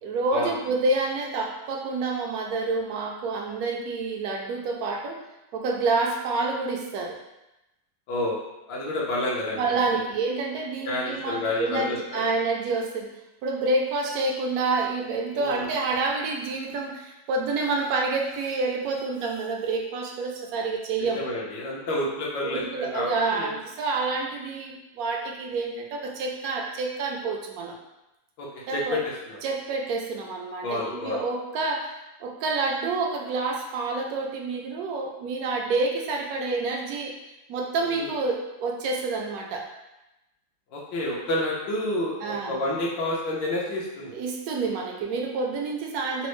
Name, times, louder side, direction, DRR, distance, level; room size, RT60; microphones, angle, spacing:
voice 1, 0.0-5.2 5.5-7.2 9.5-13.1 13.4-21.2 22.4-27.8 28.7-29.0 29.4-31.9 32.2-37.1 37.5-39.7 42.2-42.6 44.1-46.3, right 3 dB, 70° right, 1 dB, 0.9 m, -28 dB
voice 2, 8.1-8.4 8.7-10.0 10.8-12.2 15.3-15.7 21.0-23.5 28.4-29.4 30.6-31.2 37.8-38.1 40.7-44.2, left 1 dB, 80° left, -4 dB, 1.5 m, -29 dB
4.1 x 2.0 x 3.1 m, 0.95 s
omnidirectional pair, 2.0 m